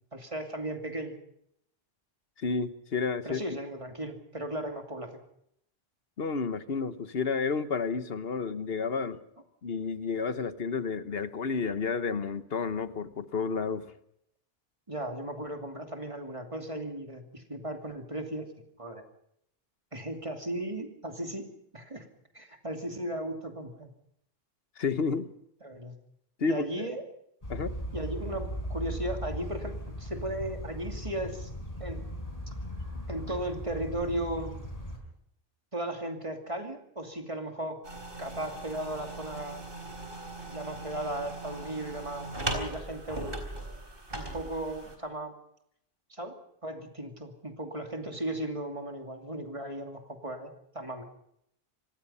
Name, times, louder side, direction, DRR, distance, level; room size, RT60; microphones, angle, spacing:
voice 1, 0.1-1.2 3.2-5.2 14.9-18.5 18.8-19.0 19.9-21.5 21.7-22.1 22.3-23.9 25.6-25.9 26.5-27.0 27.9-31.5 31.8-32.0 33.1-34.6 35.7-37.8 38.2-39.6 40.5-42.3 42.5-43.3 44.1-45.3 46.1-46.3 46.6-51.0, right 1 dB, 30° right, 4 dB, 2.7 m, -36 dB
voice 2, 2.4-3.4 6.2-9.2 9.6-13.9 24.8-25.3 26.4-26.9 27.5-27.7, left 5 dB, 70° left, 12 dB, 1.4 m, -31 dB
sound 1, 27.4-35.0, equal, 35° left, 4.9 m, -38 dB
sound 2, 37.8-45.0, right 2 dB, 60° right, 4.2 m, -39 dB
26.0 x 19.0 x 5.6 m, 0.75 s
omnidirectional pair, 1.0 m